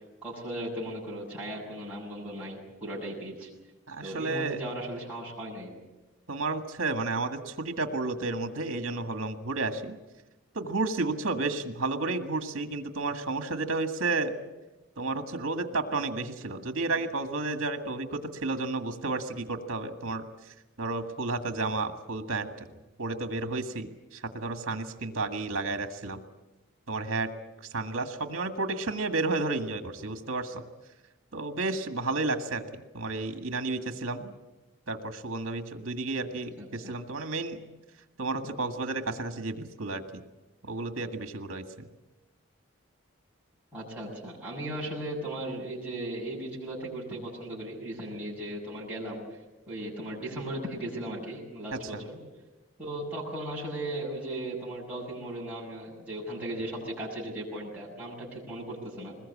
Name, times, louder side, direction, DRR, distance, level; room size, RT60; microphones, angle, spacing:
voice 1, 0.2-3.5 4.0-5.7 36.6-36.9 43.7-49.2 49.7-52.2 52.8-59.2, right 1 dB, 5° right, -6 dB, 7.1 m, -37 dB
voice 2, 3.9-4.6 6.3-10.0 10.5-14.3 15.0-22.7 23.0-26.2 26.9-27.3 27.7-30.6 31.3-32.6 32.9-34.3 34.9-37.6 38.2-40.0 40.6-41.9 51.7-52.0, right 3 dB, 65° right, 7 dB, 1.8 m, -32 dB
21.5 x 21.0 x 8.6 m, 1.0 s
head